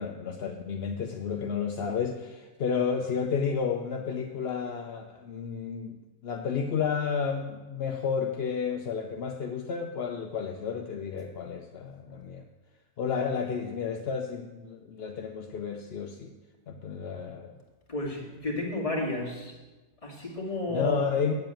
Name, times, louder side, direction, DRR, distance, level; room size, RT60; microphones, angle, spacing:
voice 1, 0.0-12.4 13.0-16.3 16.7-17.5 20.7-21.3, left 6 dB, 55° left, 3 dB, 0.7 m, -31 dB
voice 2, 17.9-19.5 20.0-21.0, left 2 dB, 20° left, -2 dB, 2.3 m, -32 dB
8.9 x 7.7 x 8.9 m, 1.2 s
omnidirectional pair, 1.7 m